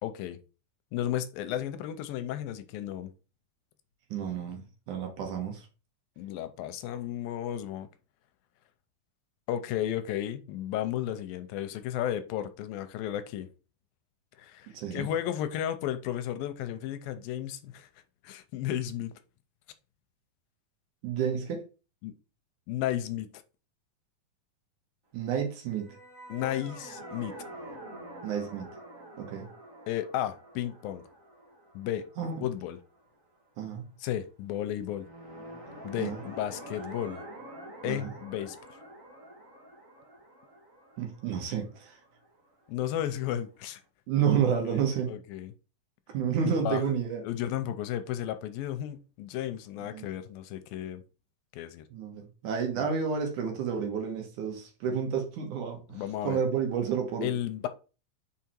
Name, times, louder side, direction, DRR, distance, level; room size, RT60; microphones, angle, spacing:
voice 1, 0.0-0.4 0.9-3.1 6.2-7.9 9.5-13.5 14.4-17.9 18.2-19.1 22.0-22.1 22.7-23.3 26.3-27.3 29.9-31.0 31.8-32.0 32.4-32.8 34.0-35.1 35.8-37.2 37.8-38.6 42.7-43.8 44.7-44.8 45.1-45.5 46.6-46.8 47.2-51.0 51.5-51.8 52.8-52.9 55.9-56.4 57.2-57.7, left 11 dB, 90° left, 2.4 m, -33 dB
voice 2, 4.1-5.7 14.7-15.1 21.0-21.6 25.1-25.9 28.2-28.7 29.2-29.5 32.2-32.4 33.6-33.8 36.0-36.2 37.8-38.1 41.0-42.0 44.1-45.1 46.1-47.2 49.9-50.1 51.9-57.3, right 7 dB, 65° right, 2.6 m, -30 dB
sound 1, 25.7-33.0 34.9-42.7, right 1 dB, 85° right, 0.7 m, -47 dB
5.6 x 4.8 x 4.4 m
omnidirectional pair, 4.2 m